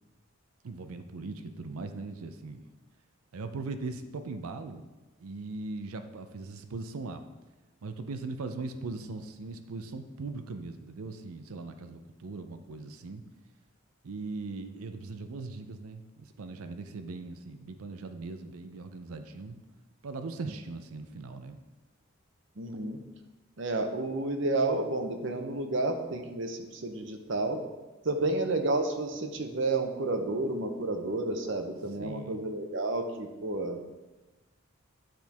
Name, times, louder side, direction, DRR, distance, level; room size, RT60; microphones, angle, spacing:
voice 1, 0.6-2.6 3.3-4.9 5.2-7.2 7.8-13.2 14.0-19.6 20.0-21.6 28.2-28.4 32.0-32.4, right 3 dB, 90° right, 8 dB, 0.5 m, -40 dB
voice 2, 22.6-23.0 23.6-27.6 28.0-33.9, right 2 dB, 60° right, 5 dB, 0.8 m, -31 dB
10.0 x 4.4 x 3.5 m, 1.1 s
head